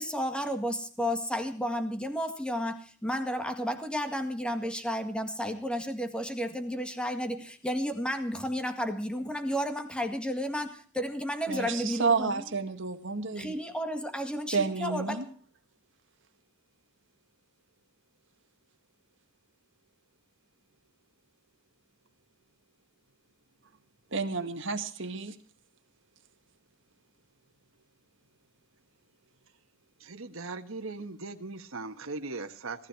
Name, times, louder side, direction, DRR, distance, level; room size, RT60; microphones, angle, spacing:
voice 1, 0.0-12.5 13.4-15.2, equal, 5° left, 7 dB, 1.8 m, -32 dB
voice 2, 11.5-13.6 14.5-15.3 24.1-25.4, right 4 dB, 65° right, 6 dB, 1.9 m, -30 dB
voice 3, 30.0-32.9, right 3 dB, 80° right, 7 dB, 1.4 m, -39 dB
18.0 x 14.5 x 4.6 m, 0.43 s
head